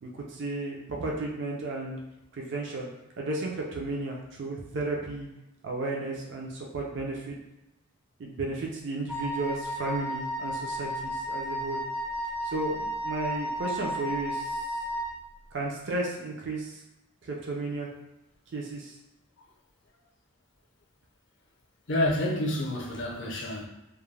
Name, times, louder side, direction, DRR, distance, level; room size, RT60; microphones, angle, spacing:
voice 1, 0.0-2.0 2.3-2.9 3.2-5.3 5.6-7.4 8.2-11.8 12.4-14.8 15.5-16.8 17.2-17.9 18.5-19.0, right 2 dB, 55° right, -2 dB, 0.4 m, -33 dB
Wind instrument woodwind instrument, 9.1-15.2, equal, 10° left, 0.4 m, -33 dB
voice 2, 21.9-23.7, left 1 dB, 55° left, -1 dB, 0.5 m, -28 dB
2.3 x 2.1 x 3.1 m, 0.94 s
head